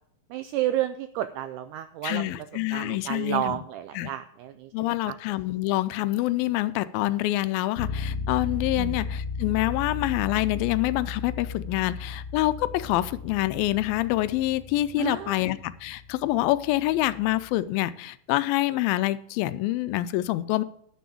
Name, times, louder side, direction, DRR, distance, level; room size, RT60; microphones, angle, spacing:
voice 1, 0.3-2.3 2.7-5.2 8.8-9.0 15.0-15.4, right 13 dB, 85° right, 11 dB, 1.8 m, -31 dB
voice 2, 2.0-3.6 4.0-4.1 4.7-20.6, left 16 dB, 90° left, 14 dB, 2.4 m, -26 dB
sound 1, 7.8-17.5, left 4 dB, 70° left, 2.1 m, -35 dB
10.0 x 6.2 x 6.9 m, 0.69 s
omnidirectional pair, 4.1 m